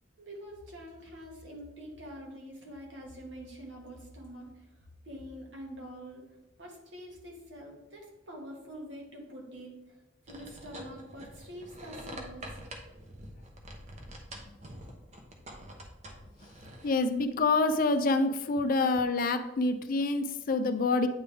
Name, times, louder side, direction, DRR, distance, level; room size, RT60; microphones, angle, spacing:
voice 1, 0.2-4.7 5.0-6.3 6.6-10.0 10.2-12.6, equal, 70° right, -1 dB, 1.6 m, -45 dB
sound 1, 10.3-17.2, right 1 dB, 35° right, 0.9 m, -46 dB
voice 2, 16.8-21.1, left 3 dB, 50° left, 9 dB, 0.4 m, -27 dB
8.7 x 3.5 x 3.4 m, 0.96 s
head